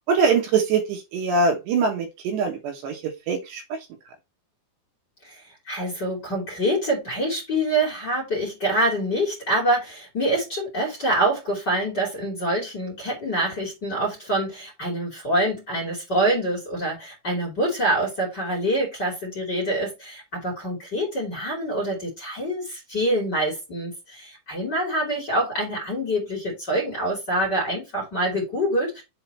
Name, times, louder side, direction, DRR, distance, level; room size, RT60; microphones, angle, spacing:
voice 1, 0.1-3.8, right 4 dB, 75° right, 3.1 m, -23 dB
voice 2, 5.2-29.0, right 1 dB, 25° left, 2.7 m, -25 dB
7.0 x 3.8 x 4.3 m
omnidirectional pair, 5.4 m